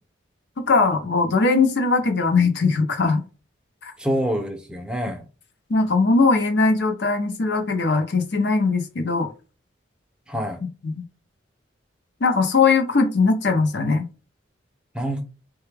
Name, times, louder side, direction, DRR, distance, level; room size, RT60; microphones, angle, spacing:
voice 1, 0.6-3.2 3.8-3.9 5.7-9.3 10.8-11.0 12.2-14.1, left 4 dB, 60° left, 0.6 m, -20 dB
voice 2, 4.0-5.2 10.3-10.6 14.9-15.2, equal, 5° right, 0.4 m, -26 dB
3.3 x 2.2 x 3.2 m
head